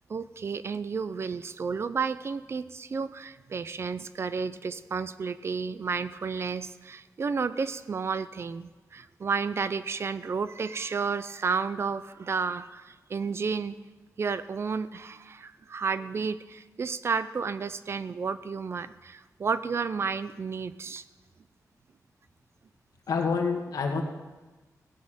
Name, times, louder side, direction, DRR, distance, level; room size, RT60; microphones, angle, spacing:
voice 1, 0.1-13.8 14.2-21.0, right 5 dB, 45° right, 14 dB, 0.5 m, -32 dB
voice 2, 23.1-24.0, left 5 dB, 85° left, 3 dB, 1.9 m, -27 dB
16.5 x 6.5 x 9.0 m, 1.2 s
wide cardioid pair, 175°, 6 cm